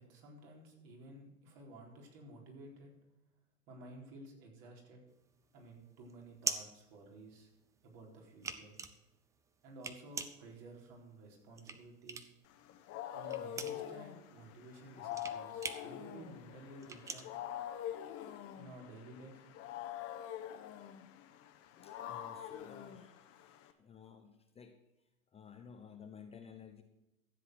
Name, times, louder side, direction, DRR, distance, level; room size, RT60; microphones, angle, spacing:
voice 1, 0.0-2.9 3.7-5.0 5.5-7.5 7.8-8.8 9.6-12.3 13.1-17.3 18.6-19.6, right 2 dB, 50° right, 0 dB, 4.2 m, -53 dB
sound 1, 5.1-7.7 8.1-12.5 12.8-18.3, right 5 dB, 10° right, 0.4 m, -43 dB
Wild animals, 12.5-23.7, left 11 dB, 35° left, 1.2 m, -45 dB
voice 2, 21.8-24.8 25.3-26.8, left 7 dB, 15° left, 5 dB, 0.9 m, -54 dB
13.5 x 7.7 x 6.1 m, 0.98 s
hypercardioid pair, 110°, 41 cm